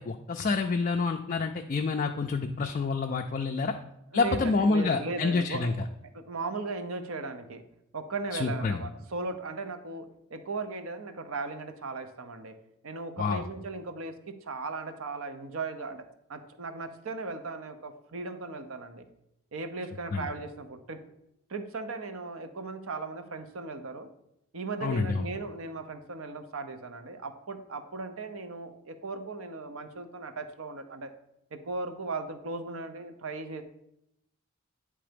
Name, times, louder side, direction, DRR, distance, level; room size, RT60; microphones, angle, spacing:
voice 1, 0.0-3.8 4.1-5.7 8.3-8.9 13.2-13.4 20.1-20.3 24.8-25.3, left 4 dB, 35° left, 4 dB, 0.3 m, -28 dB
voice 2, 4.1-5.7 6.1-7.6 7.9-12.5 12.8-16.0 16.3-19.0 19.5-21.0 21.5-24.1 24.5-31.1 31.5-33.6, right 3 dB, 75° right, 8 dB, 0.7 m, -37 dB
8.7 x 3.3 x 5.1 m, 0.82 s
head